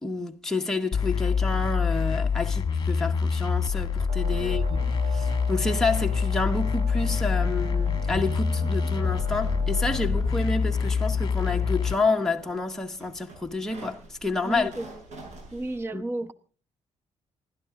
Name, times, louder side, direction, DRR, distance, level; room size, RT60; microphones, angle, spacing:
voice 1, 0.0-4.8 5.1-14.7 15.9-16.0, left 3 dB, 5° left, 1.1 m, -29 dB
sound 1, 0.9-11.9, left 6 dB, 35° left, 1.5 m, -26 dB
sound 2, 4.1-12.6, right 9 dB, 55° right, 0.9 m, -41 dB
voice 2, 4.3-4.9 8.6-8.9 14.4-15.2 15.5-16.3, right 2 dB, 20° right, 1.1 m, -35 dB
sound 3, 7.8-15.8, right 1 dB, 75° right, 8.0 m, -48 dB
27.5 x 12.0 x 3.7 m
cardioid pair, 140°, 12 cm